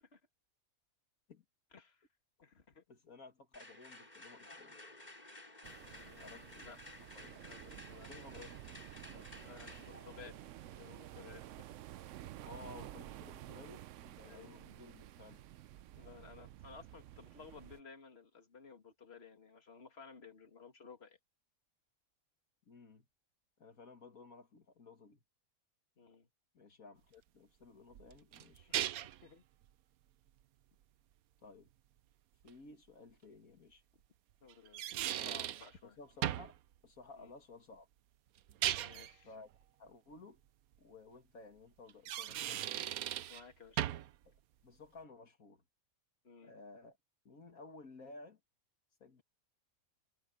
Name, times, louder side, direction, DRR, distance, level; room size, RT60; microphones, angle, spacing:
voice 1, 1.7-2.1 2.4-2.8 5.8-6.8 7.3-8.6 9.1-10.4 10.8-11.7 13.4-13.6 14.2-14.6 15.9-21.2 26.0-26.3 28.7-29.4 34.4-36.0 37.2-37.3 38.8-39.3 43.3-44.0 46.2-46.5, left 5 dB, 45° left, 2.6 m, -56 dB
voice 2, 2.9-4.8 6.2-7.4 7.9-8.4 9.1-9.3 12.4-15.5 22.7-23.0 23.6-25.2 26.5-28.7 31.4-31.7 32.4-33.8 35.1-35.3 35.8-36.6 36.8-37.9 39.2-39.5 39.8-40.4 40.8-42.7 44.3-44.4 44.6-45.6 46.4-47.0 47.2-48.4 49.0-49.2, left 3 dB, 75° left, 2.4 m, -55 dB
sound 1, 3.5-11.5, left 2 dB, 30° left, 6.4 m, -55 dB
sound 2, 5.6-17.8, right 13 dB, 70° right, 0.8 m, -52 dB
sound 3, 27.9-29.3 32.5-32.6 34.5-35.7 36.2-36.6 38.4-39.1 41.9-43.4 43.8-44.2, right 12 dB, 90° right, 1.1 m, -37 dB
omnidirectional pair, 1.5 m